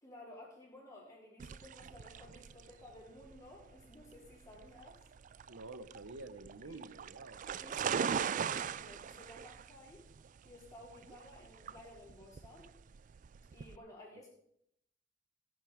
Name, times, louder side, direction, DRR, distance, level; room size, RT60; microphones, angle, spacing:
voice 1, 0.0-5.0 6.6-6.8 7.6-10.1 10.4-12.7 13.5-14.3, left 1 dB, 15° left, -5 dB, 4.5 m, -55 dB
sound 1, 1.4-13.8, right 7 dB, 40° right, 0.3 m, -41 dB
voice 2, 5.5-7.4, right 2 dB, 75° right, 12 dB, 1.0 m, -49 dB
15.5 x 7.6 x 5.1 m, 0.73 s
head